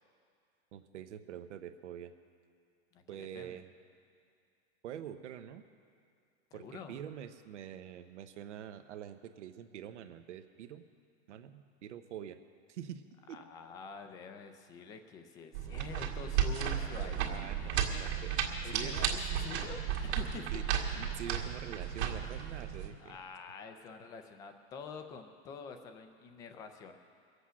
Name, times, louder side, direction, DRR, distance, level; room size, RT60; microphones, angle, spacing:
voice 1, 0.7-2.1 3.1-3.7 4.8-5.6 6.5-10.8 11.3-12.4 12.7-13.4 17.0-19.0 20.5-20.6 20.9-23.2, right 9 dB, 90° right, 9 dB, 0.9 m, -45 dB
voice 2, 2.9-3.6 6.5-7.0 13.3-18.0 18.6-20.5 23.0-27.0, left 5 dB, 10° left, 7 dB, 0.3 m, -47 dB
sound 1, 15.5-22.9, right 9 dB, 70° right, 2.1 m, -34 dB
22.0 x 8.1 x 6.2 m, 2.3 s
supercardioid pair, 155°, 35 cm